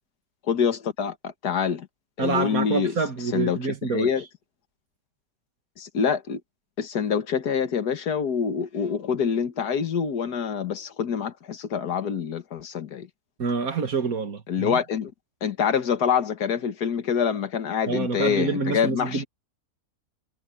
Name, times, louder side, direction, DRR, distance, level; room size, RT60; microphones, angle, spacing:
voice 1, 0.5-1.9 2.2-3.0 3.3-4.2 5.8-6.4 6.8-13.1 14.5-15.1 15.4-19.2, left 7 dB, 90° left, 2.0 m, -26 dB
voice 2, 2.2-4.1 13.4-14.8 17.9-19.2, right 4 dB, 65° right, 2.3 m, -27 dB
omnidirectional pair, 1.6 m